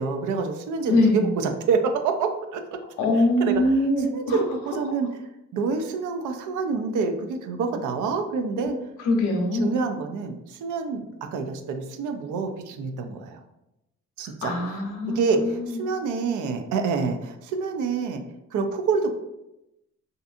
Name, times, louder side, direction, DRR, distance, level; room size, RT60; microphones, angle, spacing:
voice 1, 0.0-2.8 3.1-3.7 4.1-5.1 5.5-8.8 9.5-13.4 14.2-14.5 15.1-18.2 18.5-19.1, right 4 dB, 80° right, 6 dB, 0.4 m, -27 dB
voice 2, 0.9-1.3 3.0-4.4 9.0-9.7 14.4-15.8, left 1 dB, 85° left, 1 dB, 0.7 m, -23 dB
2.6 x 2.5 x 2.5 m, 0.90 s
cardioid pair, 90°, 30 cm